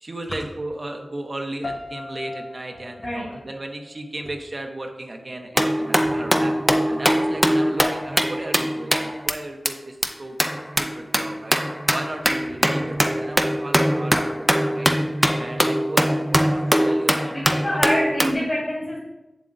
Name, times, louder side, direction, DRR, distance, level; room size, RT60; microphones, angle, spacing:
voice 1, 0.0-10.4 10.8-11.6 11.9-14.9 15.4-17.9, right 1 dB, 45° right, 3 dB, 0.8 m, -35 dB
sound 1, 1.6-4.6, left 2 dB, 65° left, 0.5 m, -39 dB
voice 2, 3.0-3.4 17.3-19.0, equal, 45° left, -8 dB, 2.4 m, -25 dB
sound 2, 5.6-9.3 9.7-9.8 10.0-10.1 10.4-18.3, equal, 5° right, 0.5 m, -22 dB
7.3 x 7.2 x 2.6 m, 1.1 s
wide cardioid pair, 65°, 0 cm